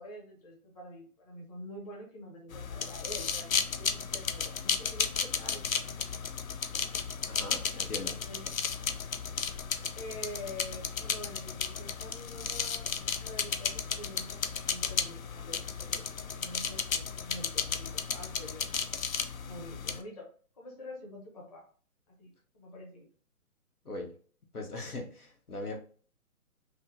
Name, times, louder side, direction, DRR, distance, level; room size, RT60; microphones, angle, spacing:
voice 1, 0.0-6.0 6.2-6.3 8.2-9.0 9.9-18.6 19.4-20.3 20.5-21.6 22.1-23.1, left 1 dB, 25° left, -2 dB, 1.0 m, -46 dB
sound 1, 2.5-20.0, left 6 dB, 65° left, 0.6 m, -34 dB
voice 2, 7.3-8.2 23.8-24.1 24.5-25.8, left 2 dB, 85° left, 2 dB, 1.3 m, -39 dB
5.4 x 2.2 x 2.6 m, 0.42 s
figure-of-eight pair, 145°, 44 cm